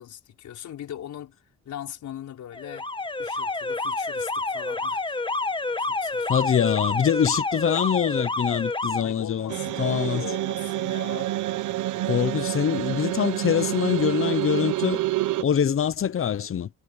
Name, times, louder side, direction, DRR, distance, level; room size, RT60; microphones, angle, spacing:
voice 1, 0.0-1.4 1.6-2.9 3.2-5.2 5.8-6.3 9.0-11.3, left 11 dB, 70° left, 6.0 m, -40 dB
Alarm, 2.5-9.0, left 3 dB, 15° left, 1.6 m, -28 dB
voice 2, 6.3-10.2 12.1-15.0 15.4-16.7, left 8 dB, 45° left, 1.1 m, -24 dB
sound 1, 9.5-15.4, right 15 dB, 80° right, 1.1 m, -28 dB
cardioid pair, 90°, 30 cm